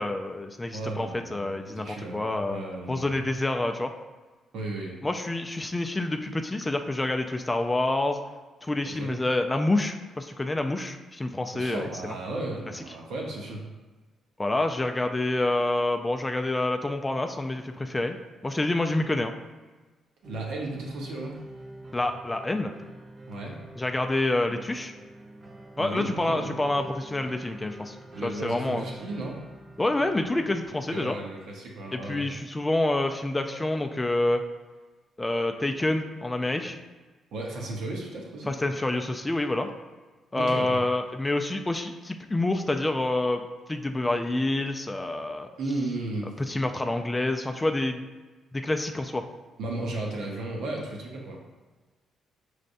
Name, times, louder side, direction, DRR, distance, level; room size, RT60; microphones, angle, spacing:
voice 1, 0.0-2.6 2.9-3.9 5.0-8.2 8.6-12.2 12.7-12.8 14.4-18.2 18.4-19.3 21.9-22.7 23.8-24.9 25.8-28.0 28.2-28.9 29.8-31.2 31.9-34.4 35.2-36.8 38.5-39.7 40.3-45.5 46.4-48.0 48.5-49.2, left 2 dB, 15° left, 5 dB, 0.3 m, -27 dB
voice 2, 0.7-3.1 4.5-5.0 9.0-9.2 11.5-13.6 20.2-21.4 23.3-23.6 25.8-26.5 28.1-29.4 30.9-32.3 37.3-38.5 40.4-40.8 45.6-46.4 49.6-51.4, right 2 dB, 75° right, -1 dB, 0.9 m, -34 dB
sound 1, 20.2-30.7, right 1 dB, 30° right, 0.6 m, -46 dB
5.2 x 3.2 x 2.6 m, 1.3 s
cardioid pair, 90°, 0 cm